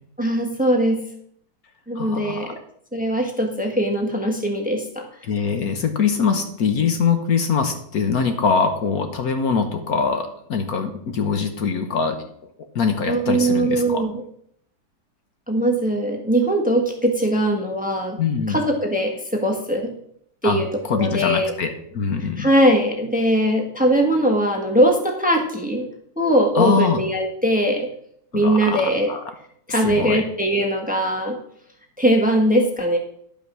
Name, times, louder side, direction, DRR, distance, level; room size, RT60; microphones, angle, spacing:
voice 1, 0.2-1.0 1.9-2.6 2.9-5.0 13.1-14.2 15.5-18.2 18.5-19.9 20.4-21.5 22.4-25.9 26.2-27.9 28.3-29.1 29.7-31.4 32.0-33.0, right 1 dB, 5° right, 2 dB, 1.3 m, -20 dB
voice 2, 1.9-2.5 5.2-12.3 12.7-14.1 18.2-18.7 20.4-22.5 26.5-27.0 28.3-29.2 29.7-30.2, left 5 dB, 60° left, 7 dB, 1.4 m, -23 dB
11.0 x 5.7 x 6.1 m, 0.68 s
omnidirectional pair, 1.8 m